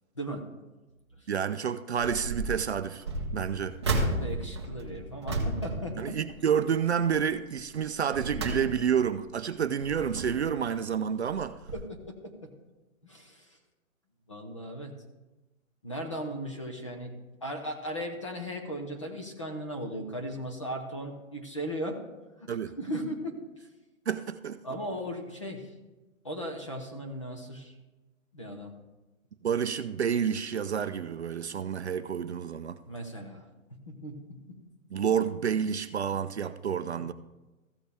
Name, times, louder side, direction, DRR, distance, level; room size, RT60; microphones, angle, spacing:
voice 1, 0.2-0.5 4.0-6.2 11.7-11.8 12.2-12.5 13.0-13.5 14.3-14.9 15.8-17.1 17.4-22.1 22.4-23.4 24.6-25.7 26.2-27.7 28.3-28.7 32.9-33.5 33.7-34.4 37.0-37.1, equal, 25° left, 0.7 m, -37 dB
voice 2, 1.3-3.0 3.3-3.8 6.0-11.6 22.5-22.7 24.1-24.6 29.4-32.8 34.9-37.1, right 7 dB, 55° right, 0.4 m, -29 dB
sound 1, 2.0-2.6 3.0-6.7 7.1-7.4 7.9-9.1 9.6-10.6 11.3-11.4 11.7-11.8, right 2 dB, 20° right, 0.7 m, -33 dB
14.5 x 6.5 x 3.4 m
hypercardioid pair, 175°, 41 cm